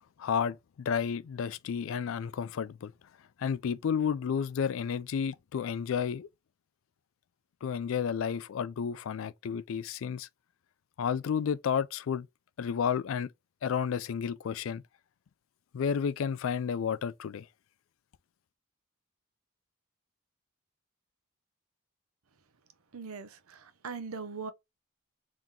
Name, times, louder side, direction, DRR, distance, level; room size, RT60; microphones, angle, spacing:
voice 1, 0.2-2.9 3.4-6.3 7.6-10.3 11.0-12.3 12.6-13.3 13.6-14.8 15.7-17.5, left 7 dB, 65° left, 0.3 m, -31 dB
voice 2, 22.9-24.5, right 5 dB, 85° right, 0.7 m, -40 dB
3.7 x 2.9 x 3.6 m
head